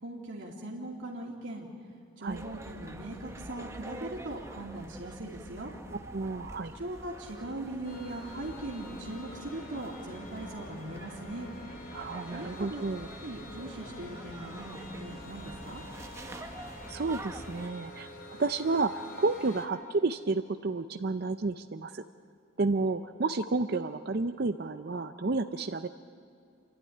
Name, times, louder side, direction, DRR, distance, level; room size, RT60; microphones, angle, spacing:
voice 1, 0.0-1.7 2.2-5.7 6.8-11.5 12.3-12.8 13.2-15.8, right 1 dB, 70° right, -4 dB, 2.6 m, -40 dB
sound 1, 2.3-17.7, right 1 dB, 15° right, 0.8 m, -46 dB
voice 2, 6.1-6.7 11.9-13.1 16.9-18.1 18.4-22.0 22.6-25.9, right 3 dB, 50° right, 8 dB, 0.5 m, -31 dB
sound 2, 7.8-19.7, left 1 dB, 45° left, 2.4 m, -47 dB
28.5 x 12.0 x 9.9 m, 2.5 s
head